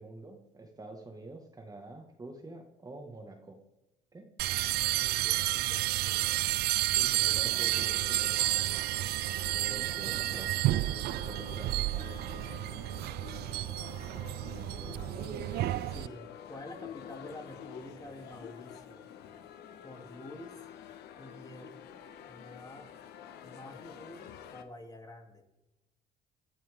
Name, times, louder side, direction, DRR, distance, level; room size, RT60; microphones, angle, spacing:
voice 1, 0.0-3.6 4.1-4.3 7.0-8.9 9.5-12.1 14.4-15.5, right 2 dB, 20° right, 3 dB, 2.0 m, -47 dB
sound 1, 4.4-16.1, right 16 dB, 70° right, 0.4 m, -31 dB
voice 2, 4.7-6.3 9.8-10.5 15.9-19.1 19.8-20.6 21.2-21.8 22.3-22.9 23.4-24.3 24.5-25.4, left 1 dB, 20° left, 2 dB, 3.2 m, -48 dB
sound 2, 7.3-24.6, left 9 dB, 75° left, 1.5 m, -48 dB
28.0 x 12.5 x 3.8 m, 0.98 s
cardioid pair, 110°, 17 cm